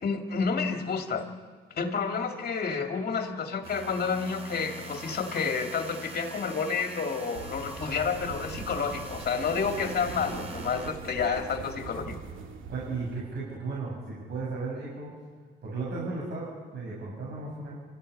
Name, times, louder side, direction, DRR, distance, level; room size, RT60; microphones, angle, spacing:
voice 1, 0.0-1.3 1.7-12.2, left 5 dB, 50° left, 4 dB, 2.4 m, -30 dB
sound 1, 3.6-11.2, right 2 dB, 30° right, 5.0 m, -43 dB
sound 2, 7.3-13.2, right 5 dB, 80° right, 2.4 m, -41 dB
voice 2, 12.7-15.1 15.6-17.7, right 3 dB, 60° right, -5 dB, 7.6 m, -35 dB
26.0 x 14.5 x 9.9 m, 1.5 s
cardioid pair, 90°, 20 cm